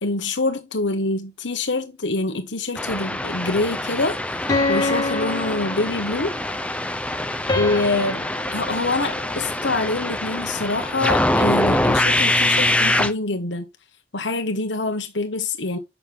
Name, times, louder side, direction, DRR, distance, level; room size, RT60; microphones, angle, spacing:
voice 1, 0.0-4.2 4.7-6.4 7.5-13.7 14.1-15.8, left 2 dB, 75° left, 1.4 m, -25 dB
sound 1, 2.8-13.1, left 1 dB, 5° left, 0.6 m, -24 dB
sound 2, 4.5-6.4 7.5-9.9, left 2 dB, 25° left, 1.6 m, -27 dB
7.8 x 6.7 x 3.6 m
head